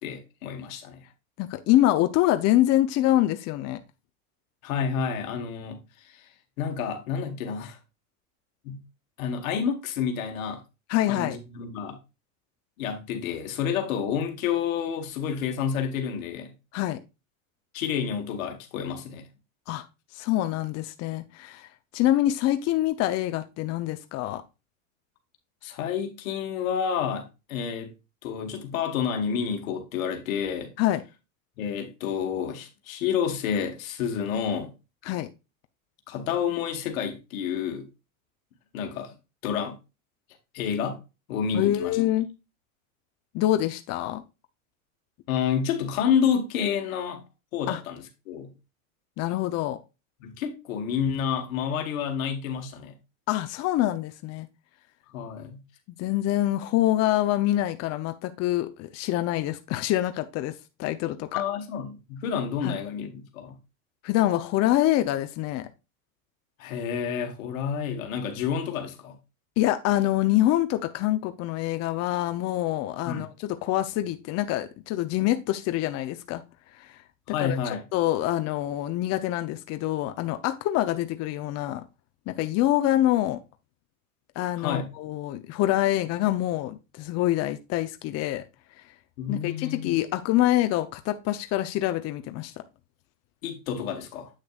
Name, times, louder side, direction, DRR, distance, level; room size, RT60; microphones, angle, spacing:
voice 1, 0.0-1.0 4.6-6.3 6.6-7.8 8.6-8.8 9.2-10.6 11.1-12.0 12.8-16.5 17.7-19.3 25.6-27.9 28.2-30.7 31.6-34.7 36.1-37.9 38.7-39.1 39.4-39.8 40.5-41.0 41.3-42.0 45.3-47.2 47.5-48.5 50.2-52.9 55.1-55.6 61.3-63.6 66.6-69.2 73.0-73.3 77.3-77.8 84.6-84.9 89.2-90.0 93.4-94.3, left 7 dB, 75° left, 1.7 m, -29 dB
voice 2, 1.4-3.8 10.9-11.4 16.7-17.0 19.7-19.8 20.1-21.7 21.9-24.4 30.8-31.0 35.0-35.3 41.5-42.3 43.3-44.2 47.7-47.8 49.2-49.8 53.3-54.5 55.9-61.4 62.6-62.8 64.0-65.7 69.6-76.4 76.8-77.0 77.4-77.6 77.9-81.8 82.3-83.4 84.4-88.4 89.3-92.5, left 14 dB, 40° left, 0.7 m, -25 dB
8.1 x 6.5 x 2.4 m
supercardioid pair, 125°, 41 cm